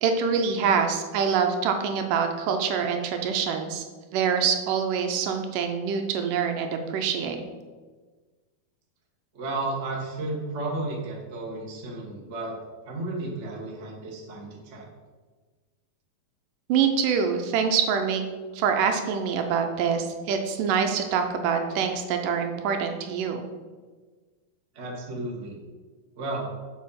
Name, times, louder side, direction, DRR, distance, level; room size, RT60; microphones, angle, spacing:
voice 1, 0.0-3.8 4.1-7.4 16.7-18.2 18.5-23.4, right 6 dB, 75° right, 5 dB, 2.2 m, -25 dB
voice 2, 9.3-12.5 12.8-14.9 24.7-25.6 26.1-26.5, right 2 dB, 55° right, -2 dB, 0.7 m, -33 dB
7.4 x 5.1 x 5.7 m, 1.4 s
omnidirectional pair, 4.0 m